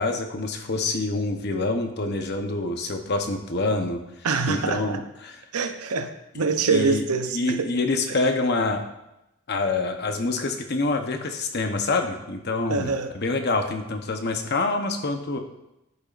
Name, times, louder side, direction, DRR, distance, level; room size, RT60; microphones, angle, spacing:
voice 1, 0.0-4.0 4.5-5.4 6.3-7.0 7.3-8.8 9.5-15.4, left 3 dB, 45° left, 5 dB, 0.9 m, -26 dB
voice 2, 4.2-5.0 5.5-7.6 8.1-8.2 12.7-13.1, right 4 dB, 90° right, 8 dB, 0.7 m, -25 dB
11.0 x 8.3 x 2.5 m, 0.89 s
head